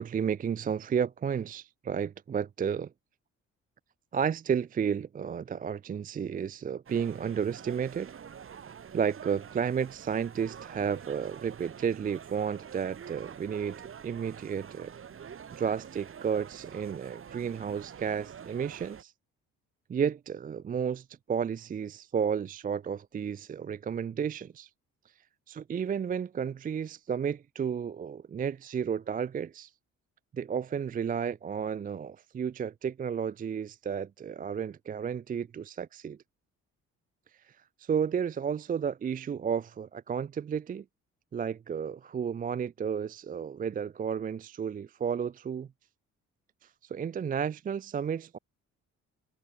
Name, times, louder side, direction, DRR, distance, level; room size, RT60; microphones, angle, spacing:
voice 1, 0.0-2.9 4.1-8.1 8.9-14.9 15.5-19.1 19.9-24.7 25.5-29.7 30.3-36.2 37.8-40.8 41.3-45.7 46.9-48.4, right 7 dB, 30° right, 0.4 m, -32 dB
sound 1, 6.9-19.0, right 7 dB, 45° right, 1.8 m, -47 dB
cardioid pair, 90°, 30 cm